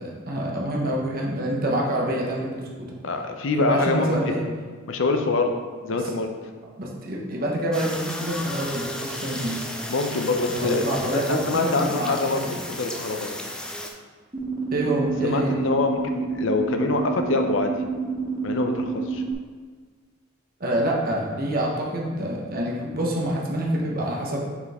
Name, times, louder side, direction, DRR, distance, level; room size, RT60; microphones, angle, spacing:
voice 1, 0.0-2.9 3.6-4.4 5.9-6.0 6.8-9.6 10.5-12.6 14.7-15.5 20.6-24.5, right 1 dB, 45° right, -2 dB, 1.0 m, -26 dB
voice 2, 3.0-4.3 4.9-5.5 5.8-6.3 9.9-10.9 11.1-12.4 12.8-13.4 15.2-17.7 18.4-19.2, left 3 dB, 70° left, 5 dB, 0.7 m, -25 dB
sound 1, 7.7-13.9, left 1 dB, 5° left, 0.5 m, -34 dB
sound 2, 14.3-19.3, right 5 dB, 20° right, 0.9 m, -29 dB
7.0 x 4.4 x 3.6 m, 1.5 s
head